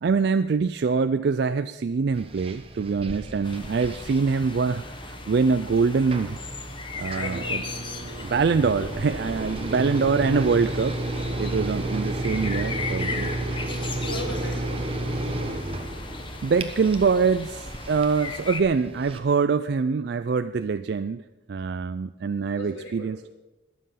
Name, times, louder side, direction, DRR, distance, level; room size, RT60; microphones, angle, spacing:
voice 1, 0.0-6.4 7.0-7.6 8.2-11.0 11.4-13.3 16.4-21.2 21.5-23.2, right 5 dB, 55° right, 11 dB, 0.3 m, -24 dB
sound 1, 2.1-19.2, right 1 dB, 30° right, 1.0 m, -32 dB
sound 2, 3.4-18.6, left 4 dB, 25° left, 0.9 m, -38 dB
voice 2, 7.1-7.6 14.0-14.9 22.5-23.3, left 1 dB, 90° left, 1 dB, 4.0 m, -38 dB
21.0 x 7.6 x 5.7 m, 1.0 s
head